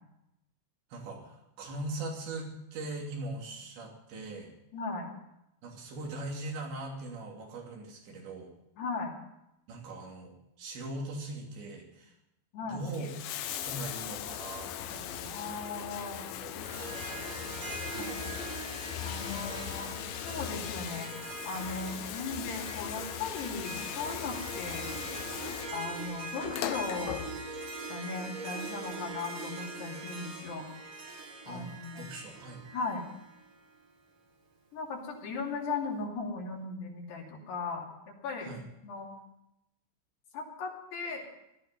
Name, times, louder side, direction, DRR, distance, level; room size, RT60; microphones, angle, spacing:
voice 1, 0.9-4.5 5.6-8.5 9.7-12.1 12.6-13.1 13.5-15.5 16.3-17.8 19.4-19.5 31.4-31.7 31.9-32.7 38.4-38.7, right 2 dB, 75° right, 0 dB, 5.2 m, -41 dB
voice 2, 4.7-5.1 8.8-9.1 12.5-12.8 15.3-16.2 18.0-18.2 19.0-24.9 25.7-27.2 27.9-30.7 31.5-32.1 32.7-33.0 34.7-38.5 38.8-39.1 40.3-41.2, left 4 dB, 70° left, -1 dB, 4.7 m, -37 dB
Bathtub (filling or washing), 12.7-27.7 28.8-28.9, left 11 dB, 90° left, 3.3 m, -39 dB
Harp, 16.6-33.9, right 3 dB, 50° right, 1.7 m, -42 dB
18.0 x 13.5 x 5.4 m, 0.85 s
omnidirectional pair, 5.2 m